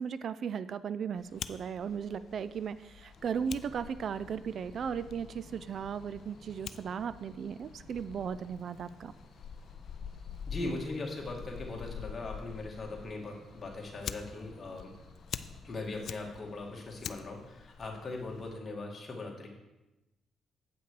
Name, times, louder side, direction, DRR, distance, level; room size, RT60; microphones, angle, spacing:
voice 1, 0.0-9.1, right 7 dB, 60° right, 15 dB, 0.3 m, -36 dB
Fire, 1.2-18.6, left 7 dB, 65° left, 0.4 m, -46 dB
sound 1, 3.1-15.7, equal, 5° right, 2.7 m, -58 dB
voice 2, 10.5-14.9 15.6-19.5, left 2 dB, 35° left, 0 dB, 2.1 m, -40 dB
8.6 x 5.8 x 4.8 m, 1.0 s
cardioid pair, 90°, 0 cm